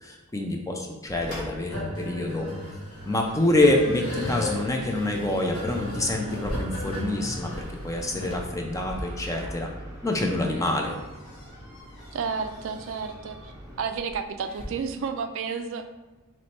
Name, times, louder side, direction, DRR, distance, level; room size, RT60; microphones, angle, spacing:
voice 1, 0.0-2.5 3.1-9.7 10.0-11.0, left 1 dB, 15° left, 1 dB, 0.4 m, -26 dB
sound 1, 1.1-14.6, equal, 55° left, 1.4 m, -44 dB
sound 2, 1.7-8.3, left 1 dB, 85° left, 1.3 m, -35 dB
sound 3, 2.9-13.8, equal, 15° right, 0.7 m, -44 dB
voice 2, 12.1-13.5 13.8-15.9, right 5 dB, 60° right, 8 dB, 0.3 m, -31 dB
3.1 x 3.1 x 4.3 m, 1.2 s
head